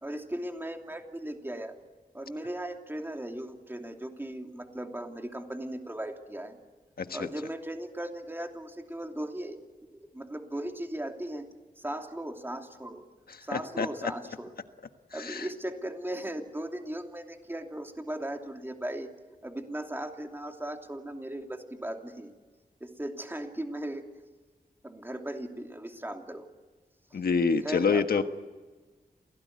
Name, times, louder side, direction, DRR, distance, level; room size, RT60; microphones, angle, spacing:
voice 1, 0.0-1.8 2.1-6.6 7.1-9.6 9.9-11.5 11.8-13.0 13.4-14.6 15.1-19.1 19.4-22.3 22.8-24.1 24.8-26.5 27.1-27.2 27.6-28.2, right 1 dB, 15° right, 4 dB, 2.9 m, -37 dB
voice 2, 7.0-7.3 13.5-14.1 15.1-15.5 27.1-28.2, left 5 dB, 75° left, 8 dB, 1.4 m, -27 dB
27.5 x 17.5 x 9.5 m, 1.3 s
wide cardioid pair, 95°, 16 cm